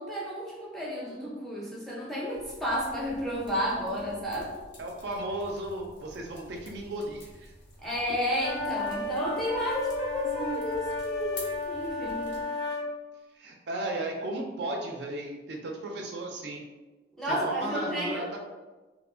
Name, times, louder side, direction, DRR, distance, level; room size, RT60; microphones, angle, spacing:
voice 1, 0.0-4.5 7.8-12.4 17.2-18.3, equal, ahead, -5 dB, 0.5 m, -32 dB
sound 1, 2.3-12.4, left 1 dB, 65° left, 0.6 m, -50 dB
voice 2, 4.8-7.5 10.2-10.6 13.3-16.6 17.3-18.4, right 1 dB, 60° right, 1 dB, 0.4 m, -35 dB
sound 2, 8.4-12.8, left 2 dB, 80° left, 1.1 m, -33 dB
2.6 x 2.1 x 2.6 m, 1.2 s
head